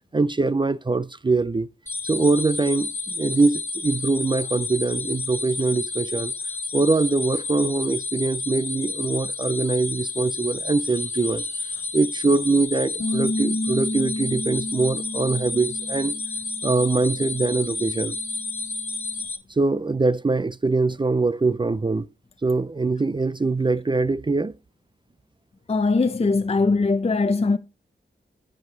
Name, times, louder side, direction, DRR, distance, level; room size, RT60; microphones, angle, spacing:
voice 1, 0.1-1.7 2.1-6.3 6.7-16.1 16.6-18.2 19.5-22.1 22.4-24.5, right 3 dB, 25° right, 0.4 m, -23 dB
sound 1, 1.9-19.4, left 3 dB, 10° left, 1.7 m, -31 dB
Bass guitar, 13.0-19.2, left 1 dB, 80° left, 1.6 m, -32 dB
voice 2, 25.7-27.6, left 3 dB, 30° left, 0.6 m, -21 dB
10.5 x 7.7 x 3.2 m
cardioid pair, 55°, 19 cm